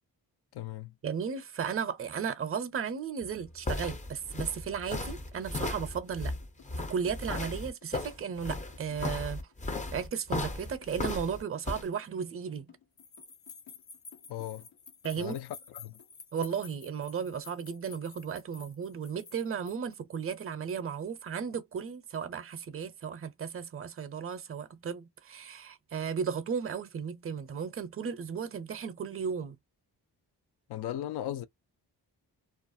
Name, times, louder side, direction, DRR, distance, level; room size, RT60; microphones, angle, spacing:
voice 1, 0.5-0.9 14.3-14.7 15.2-16.0 30.7-31.4, left 12 dB, 70° left, 0.5 m, -37 dB
voice 2, 1.0-6.4 6.8-9.4 9.9-12.6 15.0-15.4 16.3-29.6, right 7 dB, 35° right, 0.6 m, -35 dB
sound 1, 3.2-11.9, left 2 dB, 20° left, 0.5 m, -36 dB
sound 2, 5.9-16.2, left 9 dB, 90° left, 1.1 m, -59 dB
sound 3, 13.0-20.0, left 6 dB, 45° left, 0.8 m, -51 dB
2.4 x 2.0 x 2.6 m
cardioid pair, 55°, 41 cm